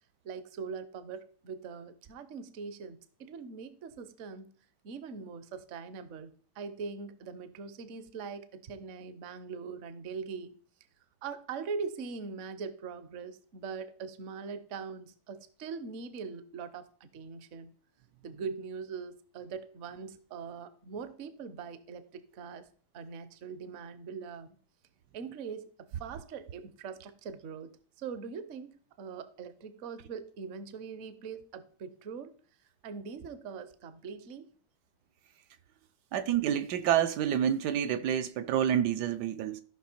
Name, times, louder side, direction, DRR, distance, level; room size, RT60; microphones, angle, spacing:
voice 1, 0.2-4.5 4.8-10.6 11.2-17.7 18.2-22.7 22.9-24.5 25.1-32.4 32.8-34.5, right 5 dB, 55° right, 0.9 m, -42 dB
voice 2, 36.1-39.6, right 9 dB, 75° right, 1.2 m, -28 dB
14.0 x 5.6 x 4.4 m
omnidirectional pair, 1.9 m